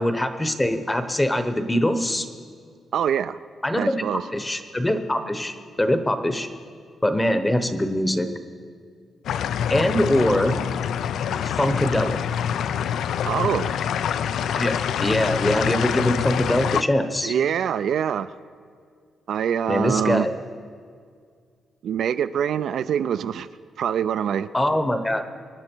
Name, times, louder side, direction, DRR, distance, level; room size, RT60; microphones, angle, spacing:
voice 1, 0.0-2.3 3.6-4.0 4.3-6.5 7.0-8.3 9.7-10.6 11.4-12.2 14.5-17.3 19.7-20.3 24.5-25.2, left 1 dB, 10° left, 9 dB, 0.8 m, -23 dB
voice 2, 2.9-3.4 3.7-4.2 13.3-13.8 17.2-18.3 19.3-20.3 21.8-23.5 23.8-24.5, right 8 dB, 65° right, 12 dB, 0.3 m, -24 dB
sound 1, 9.2-16.8, left 8 dB, 75° left, 0.4 m, -25 dB
24.5 x 10.5 x 4.5 m, 2.1 s
cardioid pair, 150°, 0 cm